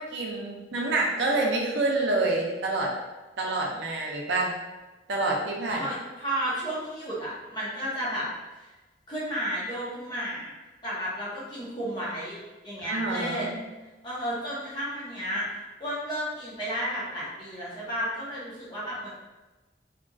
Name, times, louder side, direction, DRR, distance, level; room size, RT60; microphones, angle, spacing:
voice 1, 0.0-2.9 3.4-4.5 5.1-5.8 12.8-13.5, right 2 dB, 70° right, -1 dB, 0.5 m, -27 dB
voice 2, 5.7-8.3 8.6-8.7 9.1-10.5 10.8-12.4 12.6-13.5 14.0-15.5 15.8-19.1, equal, 25° left, -8 dB, 0.8 m, -32 dB
2.8 x 2.5 x 2.3 m, 1.1 s
head